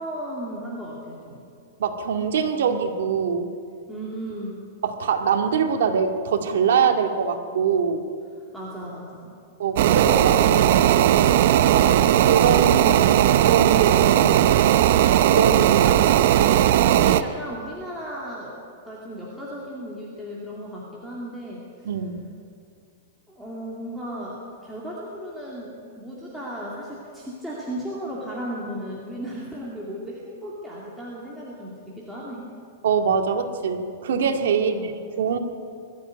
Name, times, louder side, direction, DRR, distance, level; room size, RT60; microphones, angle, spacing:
voice 1, 0.0-1.4 3.9-4.6 8.5-9.4 15.9-16.1 16.9-18.5 18.8-21.9 23.3-32.5 34.5-35.0, equal, ahead, -7 dB, 2.5 m, -35 dB
voice 2, 1.8-3.6 4.8-8.1 9.6-11.3 11.7-14.5 15.3-15.9 21.8-22.3 32.8-34.7 35.2-35.4, right 6 dB, 70° right, 5 dB, 2.2 m, -24 dB
sound 1, 9.8-17.2, right 11 dB, 50° right, 0.7 m, -17 dB
21.0 x 14.0 x 9.2 m, 2.3 s
supercardioid pair, 175°, 0 cm